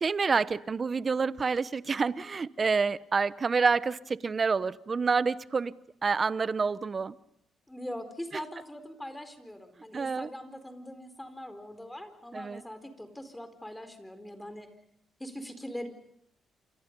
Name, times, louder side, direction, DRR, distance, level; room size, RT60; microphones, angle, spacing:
voice 1, 0.0-5.7 6.0-7.2 9.9-10.3 12.3-12.6, right 4 dB, 35° right, 0.9 m, -28 dB
voice 2, 7.7-14.7 15.2-15.9, equal, 10° left, 4.3 m, -42 dB
28.5 x 26.0 x 5.4 m
cardioid pair, 90°, 0 cm